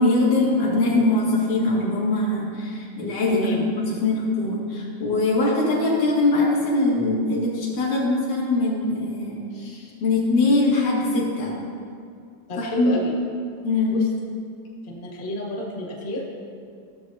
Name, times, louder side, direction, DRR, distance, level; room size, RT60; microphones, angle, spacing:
voice 1, 0.0-11.6 12.6-12.9 13.6-14.0, left 2 dB, 85° left, -6 dB, 3.5 m, -22 dB
voice 2, 3.3-3.6 12.5-13.1 13.9-14.0 14.9-16.4, left 1 dB, 35° left, -2 dB, 0.8 m, -30 dB
16.5 x 7.1 x 2.7 m, 2.3 s
omnidirectional pair, 3.3 m